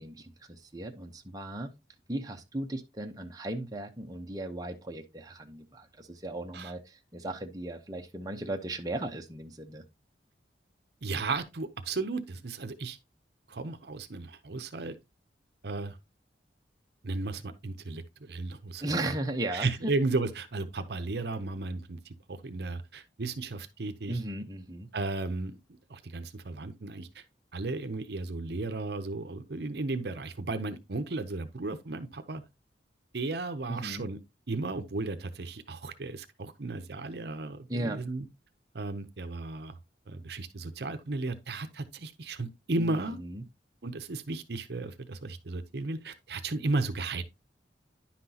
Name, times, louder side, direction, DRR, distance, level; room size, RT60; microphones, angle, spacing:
voice 1, 0.0-1.7 2.1-9.8 18.8-19.9 24.1-24.9 33.7-34.1 37.7-38.0 42.8-43.4, right 1 dB, 20° right, 0.9 m, -36 dB
voice 2, 11.0-13.0 13.5-14.9 15.6-16.0 17.0-18.8 19.5-24.2 24.9-25.6 25.9-27.2 27.5-32.4 33.1-34.2 34.5-38.3 38.7-39.8 40.1-43.2 43.8-47.2, right 3 dB, 65° right, 0.8 m, -34 dB
10.0 x 5.9 x 2.9 m
head